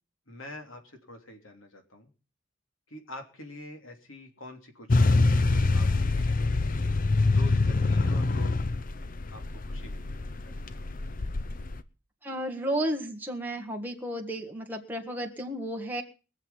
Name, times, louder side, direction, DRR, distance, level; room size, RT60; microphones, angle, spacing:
voice 1, 0.3-2.1 2.9-6.6 7.2-8.6 9.3-10.7, left 1 dB, 85° left, 4 dB, 3.2 m, -46 dB
sound 1, 4.9-11.8, left 3 dB, 45° left, 0.7 m, -25 dB
voice 2, 12.2-16.0, right 1 dB, 10° right, 1 dB, 1.7 m, -33 dB
22.0 x 7.4 x 5.7 m, 0.35 s
head